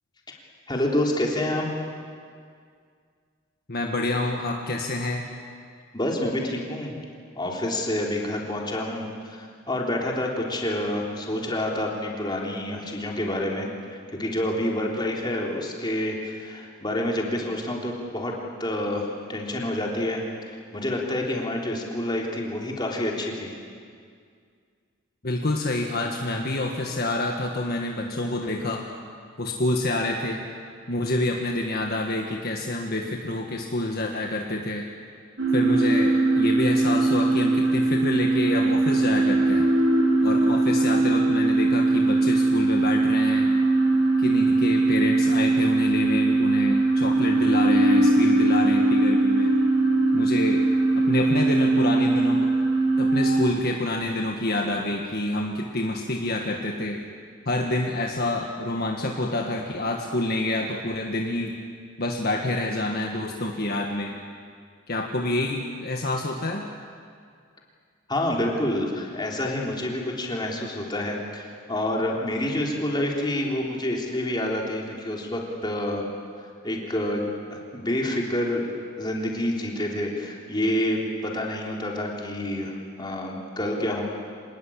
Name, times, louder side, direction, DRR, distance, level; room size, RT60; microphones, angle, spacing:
voice 1, 0.7-1.7 5.9-7.0 7.4-13.7 14.2-18.3 18.6-20.2 20.5-23.5 68.1-76.1 76.6-77.2 77.5-78.7 79.0-84.0, left 1 dB, 20° left, -1 dB, 3.5 m, -28 dB
voice 2, 3.7-5.2 25.2-28.8 29.4-30.4 30.9-34.8 35.5-39.7 40.2-43.5 44.2-49.5 50.1-50.6 50.9-52.5 53.0-57.0 57.4-61.5 62.0-64.1 64.9-66.6, left 1 dB, 50° left, 1 dB, 1.7 m, -27 dB
sound 1, 35.4-53.4, right 2 dB, 65° right, 4.0 m, -21 dB
26.0 x 20.0 x 8.6 m, 2.1 s
head